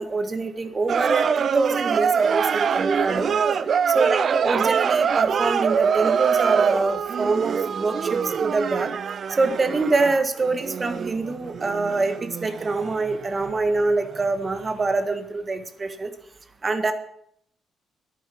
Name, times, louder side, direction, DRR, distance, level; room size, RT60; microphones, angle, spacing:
voice 1, 0.0-3.3 3.9-8.9 9.4-16.1 16.6-16.9, right 3 dB, 30° right, 8 dB, 1.6 m, -25 dB
sound 1, 0.9-14.3 14.5-14.7, right 6 dB, 50° right, 0.7 m, -24 dB
11.0 x 9.0 x 9.2 m, 0.68 s
cardioid pair, 90°, 0 cm